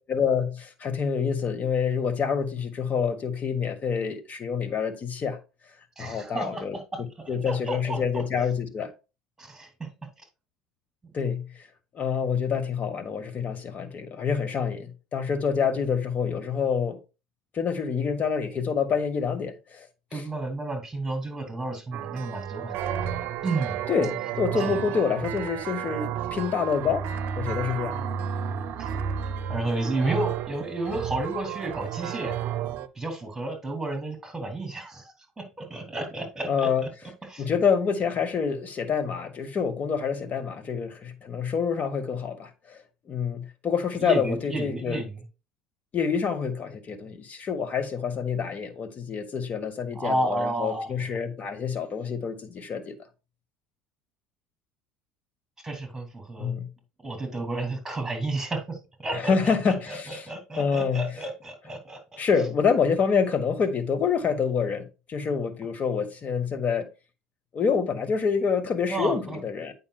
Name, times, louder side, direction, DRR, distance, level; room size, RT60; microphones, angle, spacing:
voice 1, 0.1-5.4 6.0-6.8 7.3-8.9 11.1-11.7 11.9-17.0 17.5-19.9 20.1-20.2 23.9-27.0 27.4-28.0 36.5-36.8 37.4-42.8 43.1-45.0 45.9-52.9 56.4-56.7 59.1-60.2 60.6-61.1 62.2-66.9 67.5-69.7, left 6 dB, 40° left, 1.4 m, -27 dB
voice 2, 6.0-6.6 7.4-8.2 9.4-9.9 20.1-22.9 23.4-23.8 24.6-24.9 28.8-28.9 29.5-32.3 32.9-36.7 37.3-37.5 44.0-45.2 49.9-51.1 55.6-56.5 57.0-62.2 68.9-69.4, right 2 dB, 10° right, 2.8 m, -32 dB
sound 1, 21.9-32.9, right 9 dB, 55° right, 0.6 m, -32 dB
8.8 x 5.6 x 2.4 m
hypercardioid pair, 75°, 4 cm